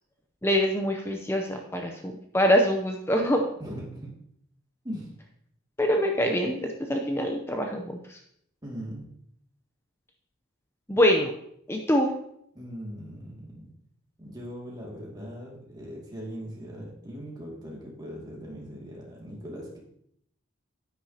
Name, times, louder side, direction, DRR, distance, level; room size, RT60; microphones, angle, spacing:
voice 1, 0.4-3.5 5.8-8.2 10.9-11.3 11.7-12.1, equal, 10° left, 3 dB, 0.6 m, -24 dB
voice 2, 3.6-4.1 4.8-5.2 8.6-9.1 12.5-13.7 14.2-19.8, equal, 20° right, -3 dB, 2.2 m, -40 dB
9.8 x 9.1 x 2.8 m, 0.70 s
head